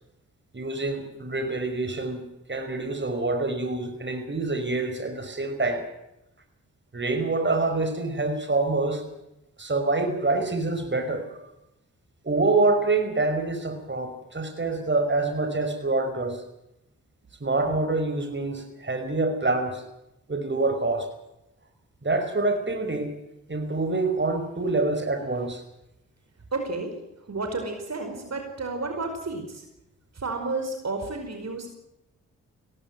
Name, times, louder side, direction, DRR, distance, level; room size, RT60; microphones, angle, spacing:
voice 1, 0.5-2.2 2.5-5.9 6.9-9.0 9.6-11.5 12.2-16.4 17.4-19.8 20.3-21.1 22.0-23.1 23.5-25.6, right 3 dB, 35° right, 7 dB, 5.6 m, -26 dB
voice 2, 26.5-26.9 27.3-29.6 30.1-31.7, right 3 dB, 50° right, 5 dB, 5.1 m, -31 dB
18.0 x 17.5 x 9.7 m, 0.88 s
supercardioid pair, 40°, 34 cm